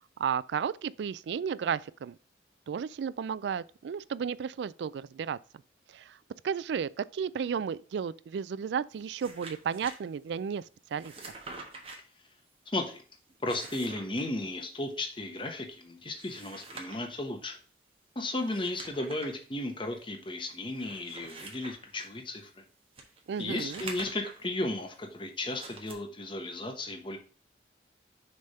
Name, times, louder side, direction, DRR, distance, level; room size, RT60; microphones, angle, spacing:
voice 1, 0.2-2.2 2.7-5.4 5.9-6.2 6.4-10.6 10.9-11.1 23.3-23.8, right 7 dB, 75° right, 0.3 m, -33 dB
sound 1, 8.9-10.0 10.9-12.0 13.3-14.3 16.0-17.1 18.4-19.4 19.9-20.0 20.7-22.1 23.0-24.4 25.5-25.9, right 3 dB, 30° right, 1.2 m, -46 dB
voice 2, 12.7-13.0 13.4-17.6 18.1-22.5 23.4-27.2, left 2 dB, 30° left, 1.0 m, -35 dB
6.5 x 3.5 x 5.5 m
head